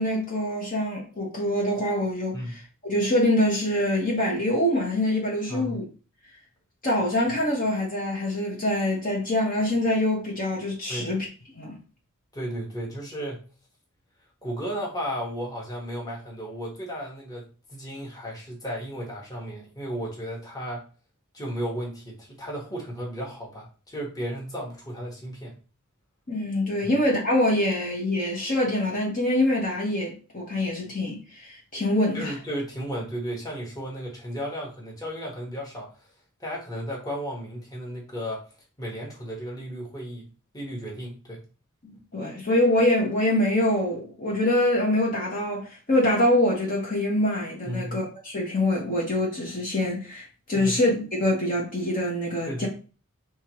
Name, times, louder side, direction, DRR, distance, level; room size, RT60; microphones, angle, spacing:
voice 1, 0.0-5.8 6.8-11.3 11.6-11.8 26.3-32.3 41.8-52.7, left 1 dB, 40° left, 1.2 m, -25 dB
voice 2, 5.5-5.8 10.9-11.1 12.3-13.4 14.4-20.8 21.3-25.5 26.8-26.9 32.1-35.9 36.4-38.4 38.8-40.2 40.5-41.4 47.6-48.0 50.5-50.8 52.5-52.7, equal, 15° left, 1.4 m, -34 dB
5.4 x 3.0 x 3.1 m
head